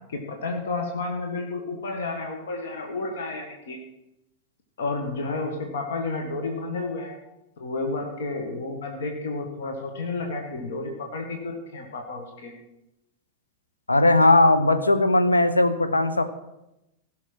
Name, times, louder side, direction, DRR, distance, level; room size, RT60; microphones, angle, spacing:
voice 1, 0.1-3.8 4.8-7.2 7.6-12.5, left 3 dB, 60° left, 3 dB, 1.6 m, -31 dB
voice 2, 13.9-16.2, left 2 dB, 80° left, 9 dB, 0.9 m, -18 dB
16.0 x 6.4 x 6.0 m, 0.91 s
figure-of-eight pair, 90°, 0 cm